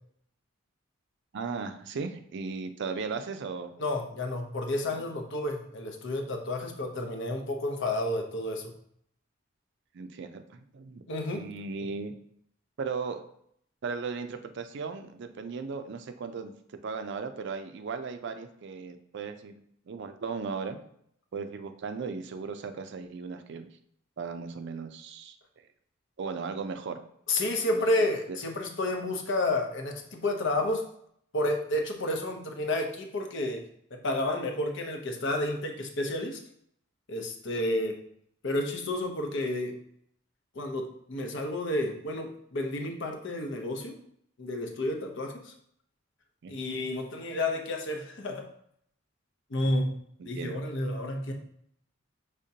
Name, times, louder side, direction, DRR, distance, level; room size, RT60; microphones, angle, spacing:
voice 1, 1.3-3.7 4.9-5.1 9.9-11.0 11.3-12.1 12.8-13.2 13.8-16.5 16.8-19.5 19.9-20.8 21.3-23.7 24.2-25.4 26.2-27.0 27.7-27.9 28.3-28.4 46.4-46.6 50.2-50.6, right 5 dB, 60° right, 8 dB, 0.4 m, -36 dB
voice 2, 3.8-8.7 11.1-11.4 27.3-30.8 31.3-36.4 37.1-38.0 38.4-39.8 40.5-44.0 44.4-45.5 46.5-48.5 49.5-49.9 50.2-51.3, left 1 dB, 65° left, 3 dB, 0.7 m, -31 dB
5.1 x 3.5 x 2.8 m, 0.68 s
head